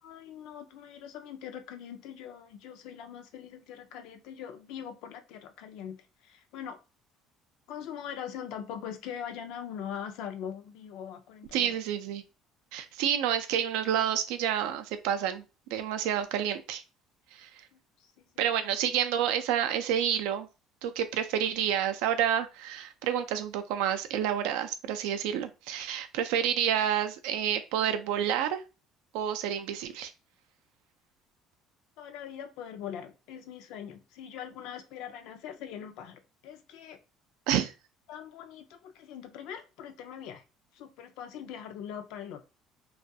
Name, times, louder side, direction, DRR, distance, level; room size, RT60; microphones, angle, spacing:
voice 1, 0.0-6.8 7.7-11.8 17.7-18.2 32.0-37.0 38.1-40.4 40.7-42.4, left 9 dB, 75° left, 0.4 m, -42 dB
voice 2, 11.5-12.2 12.7-15.4 15.7-16.8 17.4-17.5 18.4-20.5 20.8-28.6 29.1-30.1 37.5-37.7, right 9 dB, 85° right, 0.3 m, -29 dB
2.3 x 2.3 x 2.6 m
cardioid pair, 110°, 0 cm